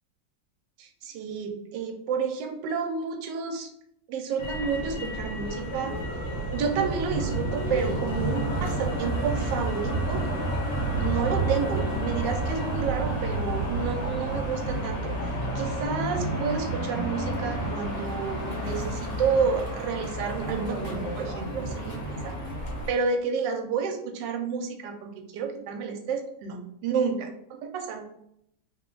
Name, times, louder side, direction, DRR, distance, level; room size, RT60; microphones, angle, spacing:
voice 1, 0.8-3.7 4.1-5.9 6.5-10.2 10.9-22.4 22.9-28.0, right 5 dB, 75° right, 5 dB, 1.2 m, -30 dB
Motor vehicle (road), 4.4-22.9, right 1 dB, 75° left, 1.8 m, -30 dB
3.5 x 2.2 x 3.8 m, 0.74 s
omnidirectional pair, 2.0 m